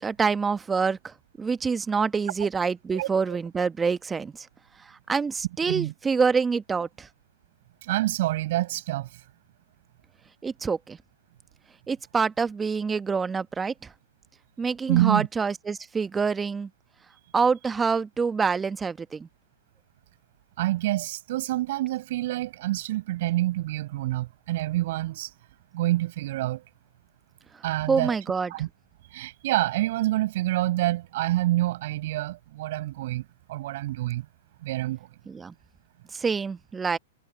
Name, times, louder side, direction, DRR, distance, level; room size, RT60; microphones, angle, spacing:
voice 1, 0.0-4.5 4.8-7.1 10.4-11.0 11.9-13.9 14.6-16.7 17.3-19.3 27.9-28.5 35.3-35.5 36.1-37.0, right 5 dB, 15° right, 1.3 m, -26 dB
voice 2, 7.8-9.1 14.9-15.3 20.6-25.3 25.7-26.6 27.6-28.1 28.5-28.7 29.1-33.2 33.5-34.3 34.6-35.1, right 16 dB, 55° right, 5.9 m, -27 dB
hypercardioid pair, 115°, 0 cm